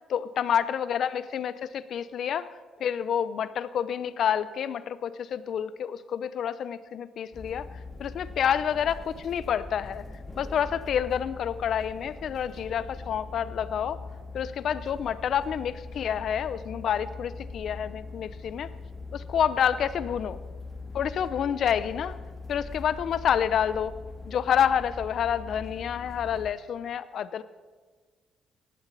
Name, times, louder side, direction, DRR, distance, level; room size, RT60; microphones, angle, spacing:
voice 1, 0.1-2.5 2.8-7.7 8.0-10.0 10.4-14.0 14.3-18.7 19.1-20.4 20.9-22.2 22.5-23.9 24.3-27.4, left 8 dB, 65° left, 15 dB, 0.7 m, -28 dB
sound 1, 7.3-26.5, left 3 dB, 20° left, 1.8 m, -41 dB
17.5 x 11.5 x 4.1 m, 1.5 s
cardioid pair, 90°, 0 cm